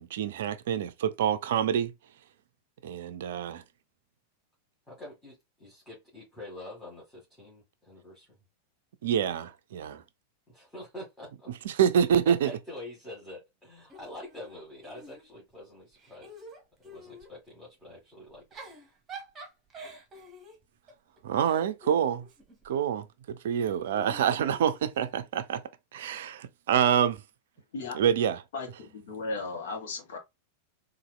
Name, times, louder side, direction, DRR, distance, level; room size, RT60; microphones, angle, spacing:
voice 1, 0.0-1.9 2.8-3.6 9.0-10.0 11.6-12.5 21.2-22.3 22.6-25.6 25.9-27.2 27.9-28.4, right 8 dB, 55° right, 0.4 m, -27 dB
voice 2, 4.9-8.3 10.5-11.5 12.3-16.4 16.8-18.5, left 1 dB, 10° left, 1.8 m, -45 dB
Giggle / Chuckle chortle, 13.9-15.5 15.9-17.3 18.3-22.8 23.9-25.3, right 1 dB, 20° right, 1.2 m, -48 dB
voice 3, 28.5-30.2, left 3 dB, 60° left, 1.3 m, -36 dB
4.1 x 2.6 x 2.2 m
figure-of-eight pair, 90°, 0 cm